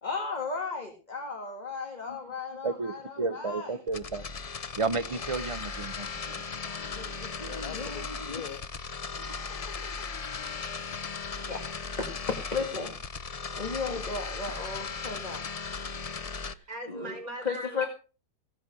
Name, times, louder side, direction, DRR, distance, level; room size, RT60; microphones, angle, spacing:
voice 1, 0.0-3.8 6.9-8.4 9.2-9.4 11.5-11.6 12.0-12.9 13.6-15.4 16.5-17.2 17.4-17.9, left 4 dB, 30° left, 2.0 m, -35 dB
voice 2, 2.6-4.3 4.8-6.1, right 4 dB, 35° right, 0.5 m, -31 dB
sound 1, 3.9-16.5, left 5 dB, 45° left, 0.4 m, -37 dB
voice 3, 6.0-7.2 16.7-17.9, right 1 dB, 65° right, 5.4 m, -41 dB
voice 4, 7.5-8.7 9.5-11.0, left 9 dB, 75° left, 1.4 m, -43 dB
16.5 x 8.3 x 6.0 m
omnidirectional pair, 1.6 m